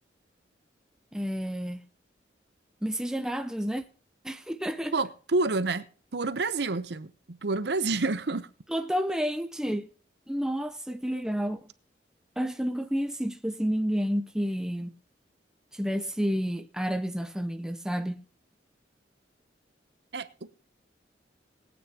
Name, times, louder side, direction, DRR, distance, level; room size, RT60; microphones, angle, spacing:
voice 1, 1.1-1.8 2.8-3.8 4.2-4.9 8.7-9.9 10.3-11.7 12.4-14.9 15.7-18.2, equal, 5° right, 0.6 m, -30 dB
voice 2, 4.9-5.8 6.1-8.5 20.1-20.5, right 3 dB, 65° right, 0.7 m, -28 dB
21.0 x 9.0 x 2.8 m
head